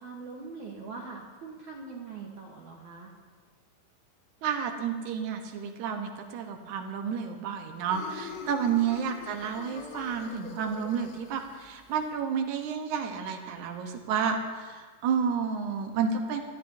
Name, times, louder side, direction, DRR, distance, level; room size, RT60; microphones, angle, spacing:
voice 1, 0.0-3.1 8.9-9.5, right 4 dB, 65° right, -2 dB, 2.0 m, -43 dB
voice 2, 4.4-16.4, right 7 dB, 80° right, 4 dB, 1.7 m, -31 dB
sound 1, 7.9-12.1, left 6 dB, 80° left, 3.1 m, -44 dB
28.5 x 13.5 x 2.7 m, 1.5 s
omnidirectional pair, 5.0 m